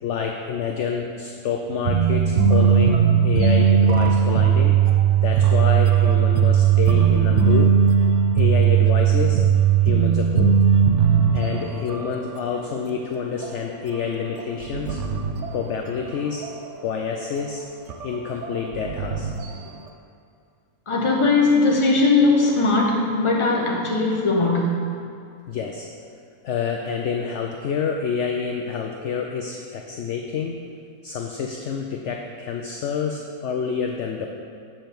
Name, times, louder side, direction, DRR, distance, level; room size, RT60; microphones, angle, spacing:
voice 1, 0.0-4.8 5.2-7.8 8.3-9.4 9.8-10.6 11.3-15.0 15.5-16.5 16.8-17.6 18.0-19.3 25.5-25.9 26.4-30.7 31.0-34.3, left 6 dB, 65° left, 2 dB, 0.8 m, -28 dB
sound 1, 1.8-12.1 12.3-12.6 12.9-13.0 13.4-16.1 16.4-16.9 17.4-17.5 17.9-19.8, right 8 dB, 60° right, 0.9 m, -18 dB
voice 2, 20.9-24.9, left 3 dB, 25° left, -1 dB, 0.9 m, -19 dB
7.4 x 5.1 x 5.9 m, 2.4 s
omnidirectional pair, 1.6 m